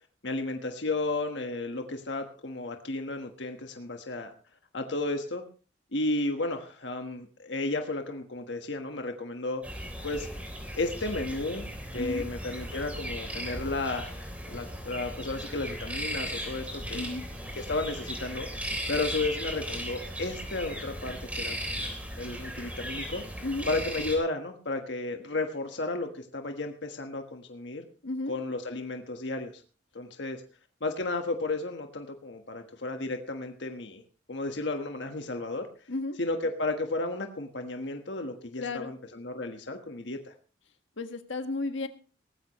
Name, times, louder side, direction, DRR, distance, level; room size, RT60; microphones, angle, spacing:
voice 1, 0.2-4.3 4.7-5.4 5.9-9.6 10.0-10.3 10.8-11.7 11.9-17.0 17.5-18.5 18.9-21.8 22.2-23.2 23.7-27.9 28.3-29.6 29.9-30.4 30.8-34.0 34.3-35.7 36.2-40.3, left 2 dB, 70° left, 5 dB, 1.4 m, -33 dB
sound 1, 9.6-24.2, equal, 5° right, 3.5 m, -37 dB
voice 2, 28.0-28.3 35.9-36.2 38.6-38.9 41.0-41.9, left 2 dB, 90° left, 7 dB, 1.6 m, -33 dB
18.5 x 15.0 x 3.1 m, 0.38 s
head